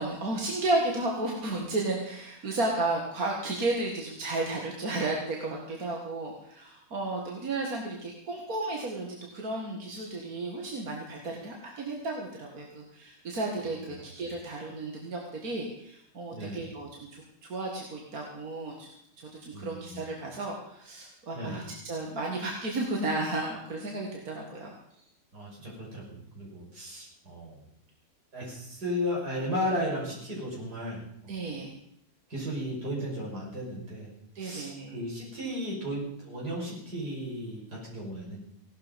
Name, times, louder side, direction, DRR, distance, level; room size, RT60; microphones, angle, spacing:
voice 1, 0.0-17.2 17.5-18.9 19.2-24.7 31.3-31.7 34.4-35.0, right 2 dB, 65° right, 0 dB, 2.4 m, -33 dB
voice 2, 16.3-16.7 19.5-20.1 21.3-21.6 25.3-27.6 28.3-31.4 32.3-34.1 34.4-38.4, equal, 90° right, -4 dB, 6.3 m, -35 dB
17.5 x 12.0 x 5.2 m, 0.72 s
omnidirectional pair, 1.7 m